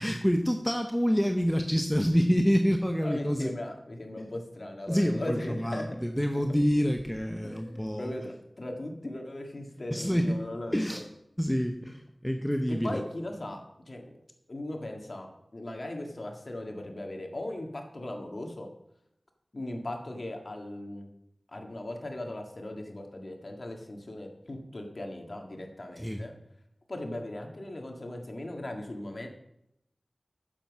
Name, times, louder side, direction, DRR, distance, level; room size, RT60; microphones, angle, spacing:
voice 1, 0.0-3.5 4.9-8.1 9.9-10.4 10.7-11.0 11.4-13.0 26.0-26.2, equal, 5° left, 5 dB, 0.9 m, -27 dB
voice 2, 3.0-5.9 6.3-6.4 7.4-11.0 12.8-13.6 13.9-14.2 14.5-18.7 19.5-21.1 21.5-26.3 26.9-29.3, left 1 dB, 60° left, 3 dB, 1.8 m, -38 dB
8.9 x 7.3 x 6.1 m, 0.82 s
wide cardioid pair, 45°, 0 cm